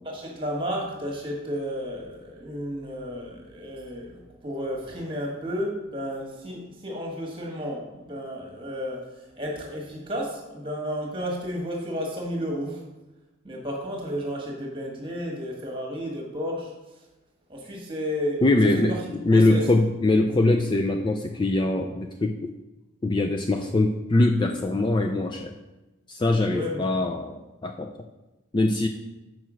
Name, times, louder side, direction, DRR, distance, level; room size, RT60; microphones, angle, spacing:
voice 1, 0.0-12.8 13.4-16.7 17.5-18.4 18.7-19.0 19.3-19.6 26.5-26.9, equal, 25° right, 0 dB, 1.5 m, -32 dB
voice 2, 18.4-22.5 23.0-25.6 26.1-27.9 28.5-28.9, left 2 dB, 20° left, 3 dB, 0.3 m, -22 dB
6.3 x 4.6 x 6.2 m, 1.1 s
head